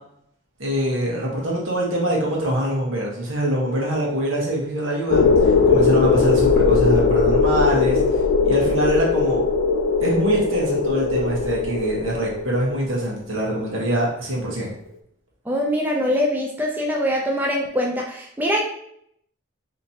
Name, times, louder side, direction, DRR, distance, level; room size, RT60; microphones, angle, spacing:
voice 1, 0.6-9.4 10.0-14.7, right 1 dB, 85° right, -3 dB, 1.3 m, -24 dB
sound 1, 5.1-12.9, left 4 dB, 75° left, 0.4 m, -19 dB
voice 2, 15.5-18.6, equal, 10° right, -1 dB, 0.4 m, -23 dB
4.2 x 2.9 x 2.8 m, 0.72 s
head